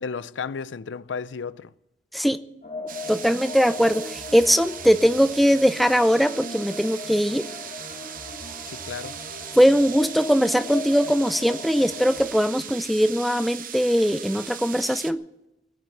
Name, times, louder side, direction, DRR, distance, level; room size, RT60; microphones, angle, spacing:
voice 1, 0.0-1.7 8.7-9.2, left 5 dB, 75° left, 0.5 m, -33 dB
sound 1, 2.6-12.3, left 2 dB, 50° left, 2.0 m, -38 dB
sound 2, 2.9-15.1, right 9 dB, 50° right, 0.8 m, -39 dB
voice 2, 3.1-7.5 9.6-15.2, equal, ahead, 0.5 m, -20 dB
20.0 x 7.9 x 8.5 m
head